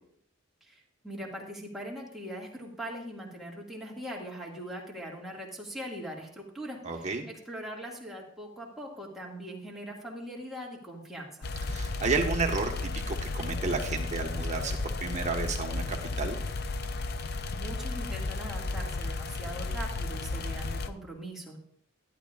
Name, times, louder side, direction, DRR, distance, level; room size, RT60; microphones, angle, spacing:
voice 1, 0.7-11.5 17.2-21.6, equal, ahead, -3 dB, 2.1 m, -41 dB
voice 2, 6.8-7.3 11.7-16.4, right 4 dB, 35° right, 2 dB, 1.4 m, -32 dB
sound 1, 11.4-20.9, left 3 dB, 50° left, 0.6 m, -33 dB
12.0 x 11.5 x 2.5 m, 0.67 s
head